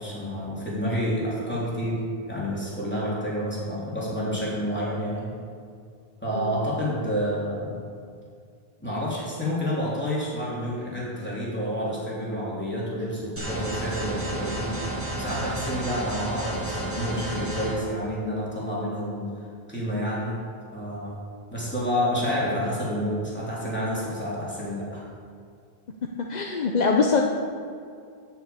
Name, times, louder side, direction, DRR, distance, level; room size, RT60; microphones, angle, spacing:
voice 1, 0.0-5.4 6.2-7.8 8.8-14.7 15.1-19.4 19.7-20.4 20.7-21.2 21.5-25.0, equal, 10° left, -7 dB, 3.4 m, -29 dB
sound 1, 13.4-17.7, right 1 dB, 10° right, 2.3 m, -31 dB
voice 2, 26.3-27.2, left 4 dB, 50° left, 1 dB, 0.8 m, -23 dB
9.3 x 6.8 x 8.6 m, 2.3 s
omnidirectional pair, 1.0 m